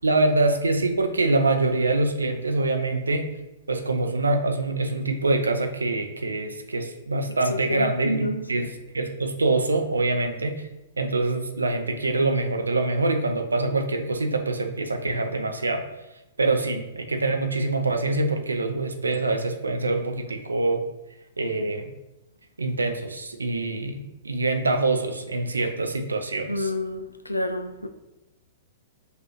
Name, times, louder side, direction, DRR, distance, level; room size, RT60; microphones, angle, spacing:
voice 1, 0.0-3.3 3.7-8.7 8.9-10.6 11.0-15.8 16.4-20.8 21.4-21.9 22.6-26.7, right 2 dB, 80° right, 0.4 m, -25 dB
voice 2, 7.5-8.7 26.5-27.9, left 1 dB, 85° left, 0.3 m, -29 dB
5.5 x 2.5 x 3.0 m
figure-of-eight pair, 105°, 0 cm